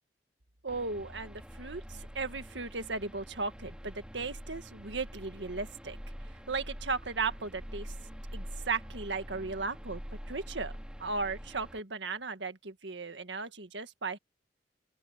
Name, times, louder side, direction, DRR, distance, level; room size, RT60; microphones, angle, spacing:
voice 1, 0.6-6.0 6.5-7.9 8.3-10.0 10.3-10.7 11.0-14.2, right 4 dB, 90° right, 1.8 m, -36 dB
sound 1, 0.7-11.8, equal, 5° right, 2.1 m, -45 dB
open air
head